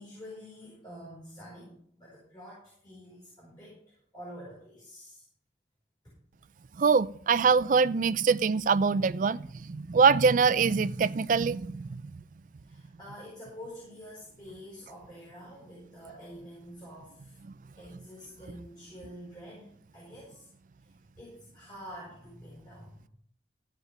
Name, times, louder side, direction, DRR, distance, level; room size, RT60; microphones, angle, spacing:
voice 1, 0.0-5.3 12.6-17.4 17.7-19.7 19.9-20.5 20.8-23.1, equal, 20° left, 5.1 m, -47 dB
voice 2, 6.8-12.0, right 5 dB, 45° right, 0.4 m, -24 dB
15.0 x 5.1 x 6.5 m
head